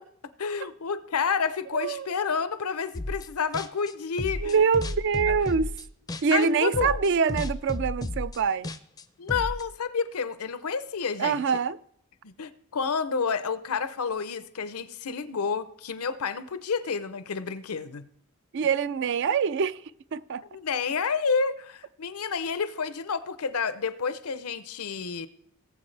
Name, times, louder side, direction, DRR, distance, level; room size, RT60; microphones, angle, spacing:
voice 1, 0.4-4.6 6.3-7.0 9.2-11.4 12.2-18.1 20.5-25.3, left 5 dB, 85° left, 0.7 m, -29 dB
voice 2, 1.7-2.1 4.4-5.7 6.2-8.7 11.2-11.8 18.5-19.8 20.1-20.4, right 6 dB, 55° right, 0.4 m, -25 dB
sound 1, 2.9-3.3 3.5-6.5 6.7-9.6, left 1 dB, 15° left, 0.4 m, -33 dB
18.5 x 7.8 x 3.3 m
head